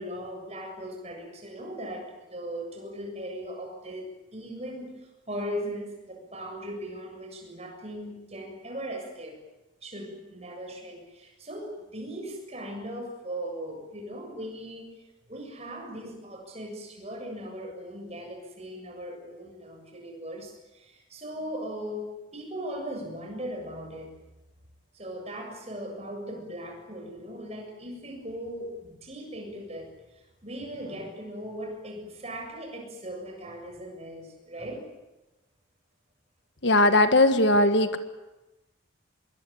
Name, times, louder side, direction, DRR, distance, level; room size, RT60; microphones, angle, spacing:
voice 1, 0.0-9.4 9.8-15.0 15.3-24.1 24.9-34.9, equal, 30° right, 2 dB, 7.2 m, -38 dB
voice 2, 36.6-38.0, left 2 dB, 60° left, 9 dB, 1.6 m, -19 dB
26.5 x 22.0 x 9.3 m, 1.0 s
head